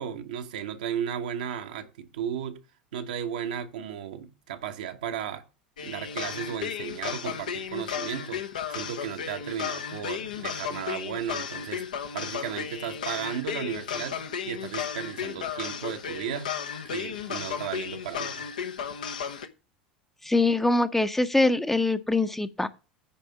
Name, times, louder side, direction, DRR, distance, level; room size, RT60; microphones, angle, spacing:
voice 1, 0.0-2.6 2.9-5.4 5.8-8.4 8.7-11.8 12.1-16.6 16.8-18.4, right 9 dB, 65° right, 1.1 m, -35 dB
sound 1, 5.8-19.5, left 8 dB, 70° left, 0.9 m, -34 dB
voice 2, 20.2-22.7, left 2 dB, 5° left, 0.7 m, -23 dB
9.9 x 3.5 x 7.0 m
figure-of-eight pair, 75°, 5 cm